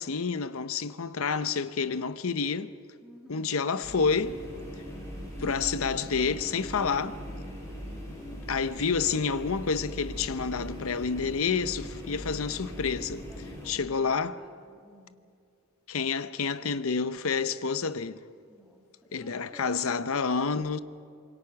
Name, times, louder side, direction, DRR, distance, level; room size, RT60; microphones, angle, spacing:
voice 1, 0.0-2.7 3.3-4.4 5.4-7.2 8.5-13.3 13.7-14.4 15.9-18.2 19.1-20.8, left 5 dB, 70° left, 0.8 m, -29 dB
voice 2, 3.0-3.6 13.3-15.2 18.5-18.8 19.1-20.2, equal, 5° right, 1.6 m, -53 dB
sound 1, 3.8-13.7, equal, 15° left, 6.7 m, -40 dB
26.5 x 23.0 x 5.9 m
head